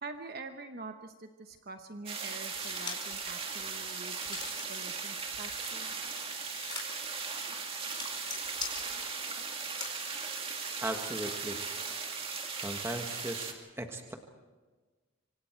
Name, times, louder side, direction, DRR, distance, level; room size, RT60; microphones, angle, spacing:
voice 1, 0.0-5.9, right 3 dB, 50° right, 6 dB, 1.1 m, -45 dB
sound 1, 2.1-13.5, right 5 dB, 25° right, 2.4 m, -38 dB
sound 2, 2.5-3.2 3.6-4.8 5.2-9.9, left 6 dB, 20° left, 4.7 m, -43 dB
voice 2, 10.8-11.6 12.6-14.1, right 1 dB, 10° right, 4 dB, 1.5 m, -37 dB
26.5 x 25.0 x 4.6 m, 1.3 s
head